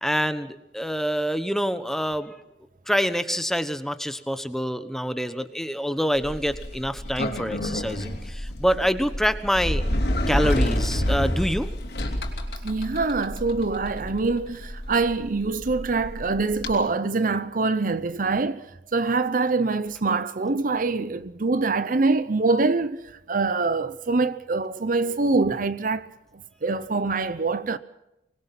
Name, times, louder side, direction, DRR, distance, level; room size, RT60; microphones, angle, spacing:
voice 1, 0.0-2.3 2.9-9.8 10.3-11.7, equal, ahead, 1.1 m, -26 dB
Sliding door, 6.1-16.7, left 1 dB, 65° left, 3.4 m, -29 dB
voice 2, 12.6-23.0 23.3-26.1 26.3-27.8, right 3 dB, 50° right, 0.7 m, -24 dB
25.0 x 20.5 x 6.0 m
head